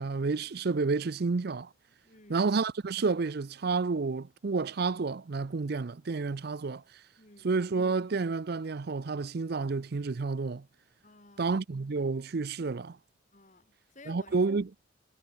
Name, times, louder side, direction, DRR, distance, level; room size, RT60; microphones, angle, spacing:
voice 1, 0.0-1.7 2.3-6.8 7.4-10.6 11.4-13.0 14.1-14.7, right 4 dB, 50° right, 0.5 m, -30 dB
voice 2, 2.0-2.5 7.2-7.5 11.0-11.6 13.3-14.4, left 2 dB, 40° left, 7.1 m, -54 dB
head